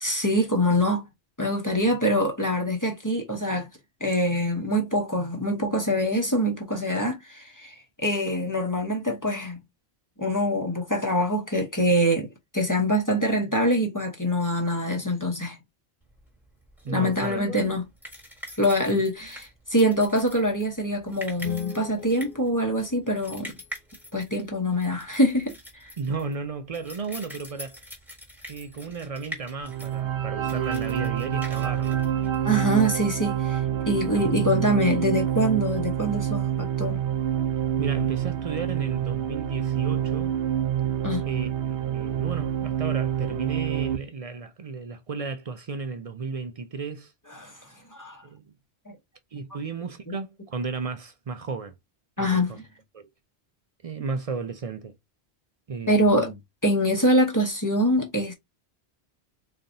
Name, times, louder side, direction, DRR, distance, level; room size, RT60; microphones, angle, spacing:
voice 1, 0.0-1.1 1.4-3.7 4.0-9.6 10.2-15.6 16.9-17.8 18.6-23.5 24.1-25.5 25.8-25.9 32.4-37.0 41.0-41.2 47.4-47.6 47.9-48.2 50.1-50.2 52.2-52.6 55.9-58.3, equal, 20° left, 0.8 m, -24 dB
sound 1, 16.1-32.8, equal, ahead, 1.3 m, -44 dB
voice 2, 16.8-17.6 18.9-19.0 26.0-27.8 28.5-32.1 34.1-34.6 37.8-40.4 41.2-47.1 48.2-48.4 49.3-51.8 52.2-52.6 52.9-53.1 53.8-55.0 55.7-56.2, right 4 dB, 50° right, 0.4 m, -34 dB
sound 2, 21.4-23.5, left 5 dB, 40° left, 1.0 m, -40 dB
sound 3, 29.6-44.0, right 10 dB, 90° right, 1.0 m, -27 dB
3.9 x 3.3 x 2.6 m
omnidirectional pair, 1.1 m